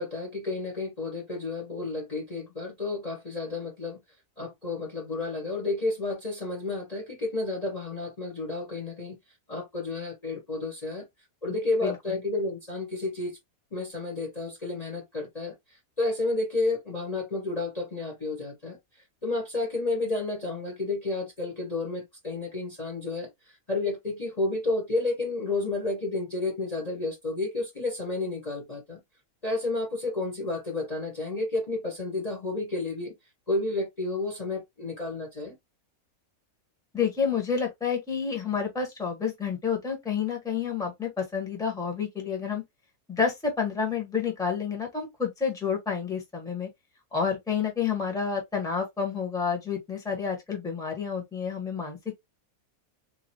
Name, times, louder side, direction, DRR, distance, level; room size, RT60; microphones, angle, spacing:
voice 1, 0.0-4.0 4.4-9.2 9.5-11.1 11.4-13.4 13.7-15.6 16.0-18.8 19.2-23.3 23.7-29.0 29.4-33.1 33.5-35.5, left 2 dB, 30° left, 1.1 m, -31 dB
voice 2, 36.9-42.6 43.1-46.7 47.1-52.0, left 6 dB, 5° left, 1.1 m, -29 dB
3.9 x 2.3 x 2.8 m
omnidirectional pair, 1.6 m